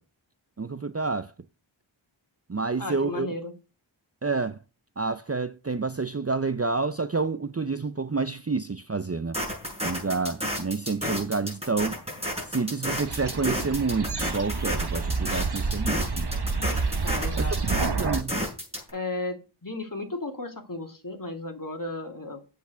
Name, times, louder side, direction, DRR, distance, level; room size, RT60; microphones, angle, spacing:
voice 1, 0.6-1.3 2.5-3.3 4.2-4.6 5.0-9.4 9.8-12.0 12.5-16.3 17.4-17.5 18.0-18.4, right 4 dB, 30° right, 0.6 m, -29 dB
voice 2, 2.8-3.5 17.0-17.6 18.9-22.4, left 2 dB, 45° left, 2.6 m, -34 dB
sound 1, 9.3-18.9, equal, 10° right, 7.2 m, -31 dB
sound 2, 13.1-18.2, right 4 dB, 55° right, 1.1 m, -29 dB
8.3 x 8.3 x 6.9 m
wide cardioid pair, 40°, 47 cm